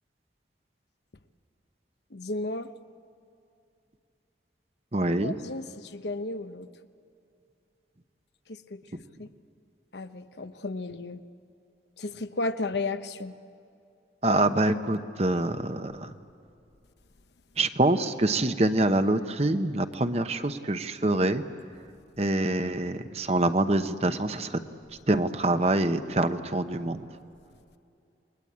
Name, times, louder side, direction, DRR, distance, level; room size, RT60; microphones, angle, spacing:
voice 1, 2.1-2.7 5.0-6.7 8.7-8.8 9.2-9.3 9.9-11.2 12.0-13.4, left 2 dB, 75° left, 1.0 m, -33 dB
voice 2, 4.9-5.3 14.2-16.1 17.6-21.4 22.2-24.6 25.1-27.0, right 2 dB, 35° right, 1.0 m, -25 dB
29.0 x 22.0 x 8.7 m
head